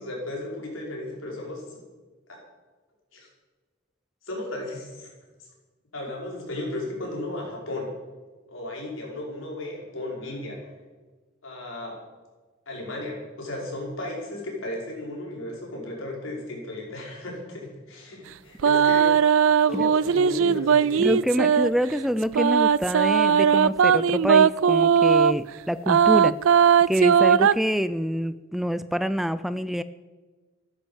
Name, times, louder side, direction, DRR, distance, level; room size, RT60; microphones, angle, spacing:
voice 1, 0.0-1.8 2.3-2.4 3.1-3.3 4.2-5.1 5.9-7.9 8.5-10.7 11.4-12.0 12.7-19.1 19.7-21.1, left 1 dB, 85° left, -2 dB, 5.4 m, -35 dB
sound 1, 18.6-21.7 22.3-25.4 25.9-27.5, right 7 dB, 85° right, 0.4 m, -19 dB
voice 2, 21.0-26.4 26.9-29.8, equal, ahead, 14 dB, 0.4 m, -26 dB
14.5 x 11.5 x 7.2 m, 1.3 s
head